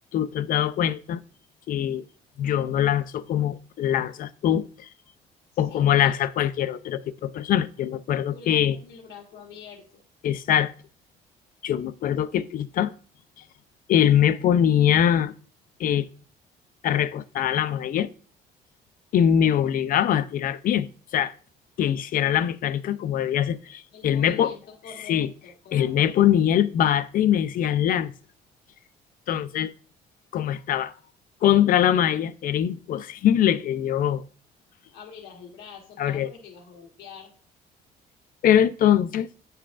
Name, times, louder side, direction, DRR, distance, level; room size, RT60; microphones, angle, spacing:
voice 1, 0.1-1.2 1.7-2.0 2.4-4.9 5.6-8.8 10.2-10.7 11.6-12.9 13.9-15.3 15.8-16.1 16.8-18.1 19.1-20.9 21.1-21.3 21.8-24.5 25.1-25.3 25.7-28.1 29.3-29.7 30.3-30.9 31.4-34.2 36.0-36.3 38.4-39.3, left 10 dB, 55° left, 0.5 m, -22 dB
voice 2, 5.7-6.1 8.3-10.0 23.9-25.9 34.9-37.3, left 6 dB, 70° left, 1.6 m, -45 dB
9.3 x 5.5 x 2.5 m
cardioid pair, 110°, 17 cm